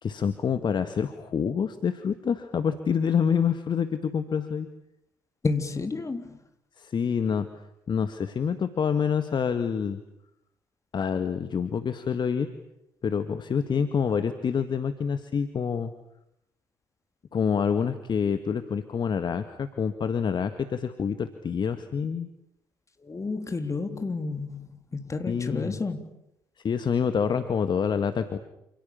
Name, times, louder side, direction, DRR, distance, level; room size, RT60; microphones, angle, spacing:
voice 1, 0.0-4.7 6.8-7.5 7.9-10.0 10.9-12.5 13.0-15.9 17.3-22.3 25.3-25.8 26.6-28.4, left 6 dB, 45° left, 10 dB, 1.8 m, -27 dB
voice 2, 5.4-6.4 14.2-14.3 23.0-26.1, left 3 dB, 30° left, 7 dB, 3.7 m, -31 dB
28.5 x 28.5 x 7.1 m, 0.81 s
figure-of-eight pair, 45°, 11 cm